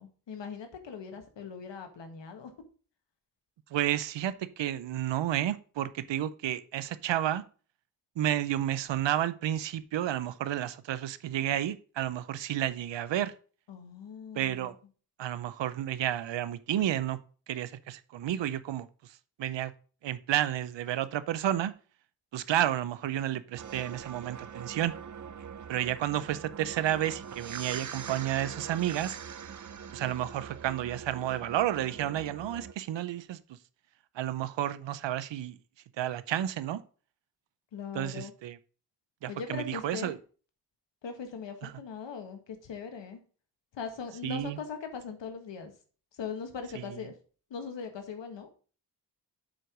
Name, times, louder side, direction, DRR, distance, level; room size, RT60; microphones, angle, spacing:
voice 1, 0.0-2.5 13.7-14.7 37.7-38.3 39.3-40.2 41.0-43.2 43.7-45.7 46.1-47.1 47.5-48.5, left 6 dB, 85° left, 6 dB, 1.6 m, -40 dB
voice 2, 3.7-7.4 8.2-13.3 14.3-14.7 15.2-17.2 17.5-18.9 19.4-19.7 20.0-21.7 22.3-24.9 25.7-29.2 29.9-33.6 34.1-35.6 36.0-36.8 37.9-38.6 39.2-40.2 41.6-41.7 44.2-44.6 46.7-47.0, right 12 dB, 90° right, 15 dB, 0.7 m, -31 dB
sound 1, 23.6-32.7, right 7 dB, 45° right, 0.7 m, -43 dB
7.5 x 4.7 x 5.0 m, 0.39 s
wide cardioid pair, 105°, 42 cm